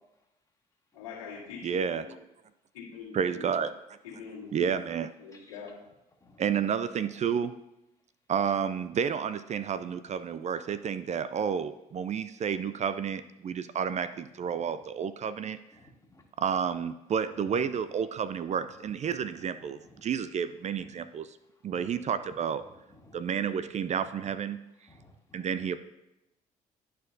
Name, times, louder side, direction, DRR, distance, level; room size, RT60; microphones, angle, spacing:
voice 1, 0.9-2.1 2.7-3.6 4.0-4.9 5.2-5.7, left 6 dB, 90° left, -6 dB, 1.9 m, -43 dB
voice 2, 1.6-2.1 3.1-3.7 4.5-5.1 6.4-7.5 8.3-15.6 16.4-21.4 21.6-22.6 23.1-24.6 25.3-25.8, right 7 dB, 40° right, 13 dB, 0.4 m, -30 dB
voice 3, 9.6-9.9 14.7-14.8 15.7-16.2 18.3-19.9 20.7-20.9 21.7-22.0 22.7-23.2 24.2-24.3 24.9-25.6, left 2 dB, 20° left, 0 dB, 1.9 m, -57 dB
11.5 x 4.4 x 2.7 m, 0.92 s
hypercardioid pair, 55°, 18 cm